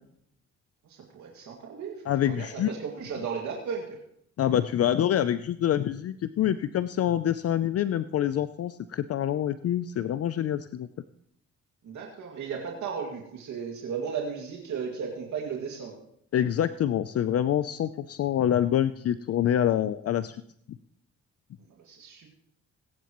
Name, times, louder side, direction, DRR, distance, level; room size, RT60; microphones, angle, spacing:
voice 1, 0.9-4.0 11.8-15.9 21.9-22.3, right 6 dB, 70° right, -1 dB, 2.2 m, -35 dB
voice 2, 2.1-2.7 4.4-10.9 16.3-20.4, left 10 dB, 55° left, 13 dB, 0.5 m, -26 dB
20.5 x 10.0 x 3.0 m, 0.71 s
cardioid pair, 90°, 30 cm